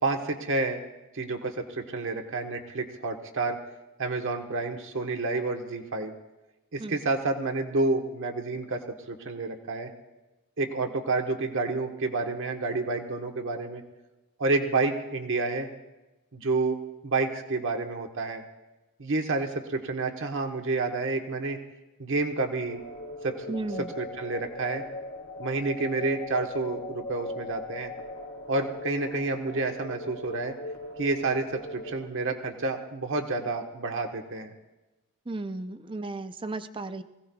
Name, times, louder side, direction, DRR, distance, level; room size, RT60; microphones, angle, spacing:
voice 1, 0.0-0.8 1.1-3.6 4.0-6.1 6.7-9.9 10.6-13.8 14.4-15.7 16.3-18.4 19.0-21.6 22.0-22.8 23.2-23.3 23.8-24.8 25.4-27.9 28.5-30.5 31.0-34.5, right 3 dB, 60° right, 4 dB, 1.3 m, -29 dB
sound 1, 22.6-32.1, left 1 dB, 60° left, 1.6 m, -39 dB
voice 2, 23.5-23.9 35.3-37.0, right 2 dB, 25° right, 11 dB, 0.5 m, -34 dB
24.5 x 17.0 x 2.3 m, 1.1 s
head